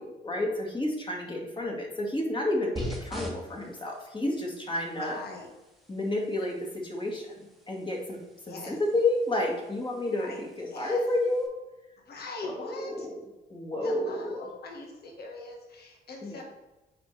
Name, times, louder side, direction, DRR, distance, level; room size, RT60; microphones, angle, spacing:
voice 1, 0.0-5.2 5.9-8.2 8.5-10.3 10.6-11.5 12.4-13.2 13.5-14.5 16.2-16.4, left 1 dB, 25° left, -1 dB, 2.0 m, -30 dB
sound 1, 2.8-11.5, equal, ahead, 1.4 m, -45 dB
voice 2, 5.0-5.5 8.4-8.8 10.2-10.4 10.7-11.0 12.0-13.1 13.8-16.4, left 3 dB, 55° left, 0 dB, 1.5 m, -41 dB
9.2 x 4.4 x 3.4 m, 1.1 s
cardioid pair, 90°, 20 cm